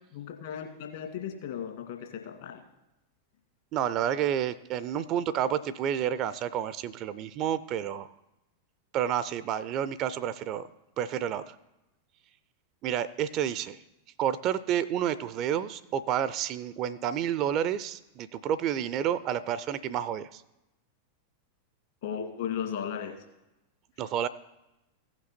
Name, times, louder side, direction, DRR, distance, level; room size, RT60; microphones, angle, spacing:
voice 1, 0.1-2.6 22.0-23.2, left 8 dB, 55° left, 3 dB, 1.9 m, -36 dB
voice 2, 3.7-8.1 8.9-10.7 11.0-11.5 12.8-13.8 14.2-20.4 24.0-24.3, right 10 dB, 40° right, 16 dB, 0.4 m, -30 dB
15.5 x 5.9 x 4.4 m, 0.94 s
figure-of-eight pair, 90°, 0 cm